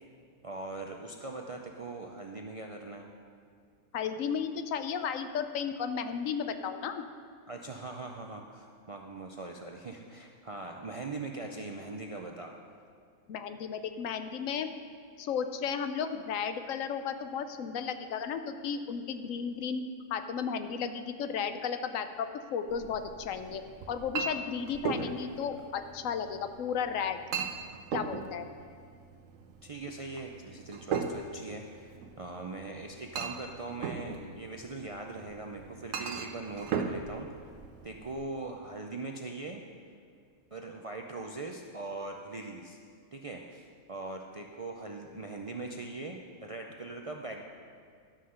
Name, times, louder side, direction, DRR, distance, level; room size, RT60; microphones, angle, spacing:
voice 1, 0.4-3.1 7.5-12.5 24.9-25.5 29.6-37.4 37.8-39.6 40.5-42.8 43.1-47.4, right 3 dB, 50° right, 1 dB, 0.4 m, -41 dB
voice 2, 3.9-7.0 13.3-14.7 15.2-23.6 23.9-27.2 27.9-28.5, left 7 dB, 85° left, 9 dB, 1.0 m, -34 dB
Chink clink, 22.7-38.2, right 5 dB, 85° right, 1.1 m, -39 dB
12.0 x 5.7 x 6.4 m, 2.2 s
omnidirectional pair, 1.3 m